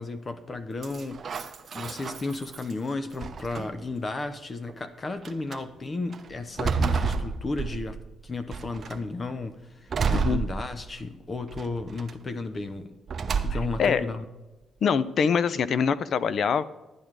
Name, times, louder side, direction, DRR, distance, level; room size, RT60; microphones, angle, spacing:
voice 1, 0.0-8.0 8.2-12.9 13.4-14.3, left 3 dB, 30° left, 10 dB, 0.9 m, -34 dB
sound 1, 0.8-2.7 3.2-3.9 4.7-4.8 5.2-5.6 6.1-8.1 8.5-9.0 9.9-11.1 11.5-12.1 13.1-13.9, right 5 dB, 45° right, 0.8 m, -30 dB
voice 2, 13.5-14.0 14.8-16.6, left 6 dB, 60° left, 16 dB, 0.6 m, -24 dB
12.0 x 9.0 x 4.8 m, 1.1 s
cardioid pair, 90°, 0 cm